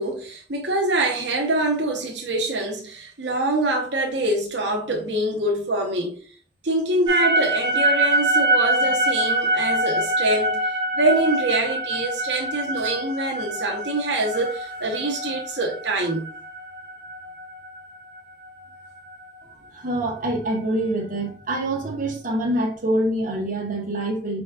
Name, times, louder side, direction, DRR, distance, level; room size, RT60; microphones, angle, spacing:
voice 1, 0.0-6.2 6.6-16.3, right 2 dB, 80° right, 1.0 m, -25 dB
sound 1, 7.1-19.2, right 1 dB, 25° right, 1.8 m, -25 dB
voice 2, 19.7-24.4, right 1 dB, 50° right, 1.3 m, -25 dB
5.1 x 4.1 x 2.4 m
head